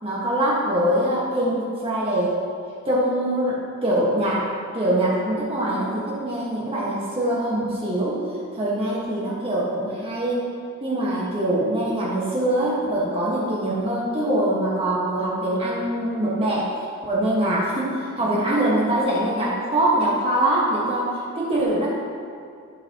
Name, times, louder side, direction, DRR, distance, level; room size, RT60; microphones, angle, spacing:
voice 1, 0.0-2.4 2.8-8.2 8.5-10.4 10.8-16.7 17.0-21.9, right 1 dB, 25° right, -7 dB, 1.6 m, -23 dB
14.5 x 5.9 x 3.0 m, 2.3 s
head